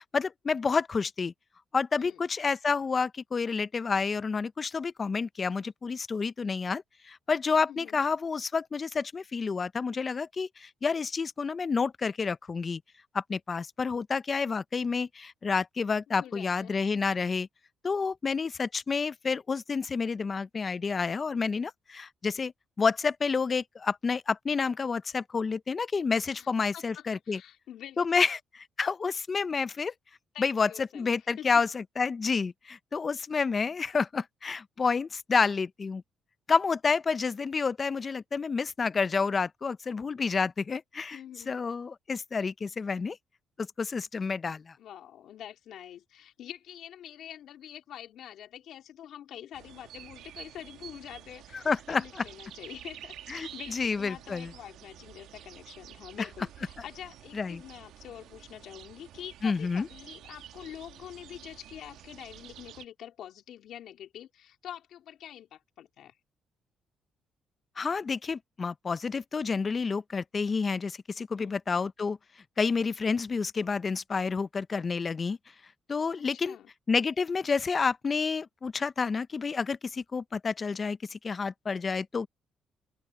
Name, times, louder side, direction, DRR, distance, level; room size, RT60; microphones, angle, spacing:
voice 1, 0.0-1.3 1.7-12.8 13.1-17.5 17.8-22.5 22.8-27.4 28.0-29.9 30.4-36.0 36.5-41.2 41.5-43.2 43.6-44.8 51.7-52.0 53.3-54.5 57.3-57.6 59.4-59.9 67.8-72.2 72.6-75.4 75.9-76.6 76.9-82.3, left 5 dB, 35° left, 0.6 m, -29 dB
voice 2, 7.7-8.0 16.1-16.8 26.3-26.5 26.7-28.3 30.3-31.5 41.1-41.5 44.8-66.2 71.4-71.6 76.3-76.7, left 10 dB, 75° left, 3.4 m, -46 dB
sound 1, 49.5-62.9, right 11 dB, 85° right, 1.3 m, -49 dB
open air
cardioid pair, 90°, 0 cm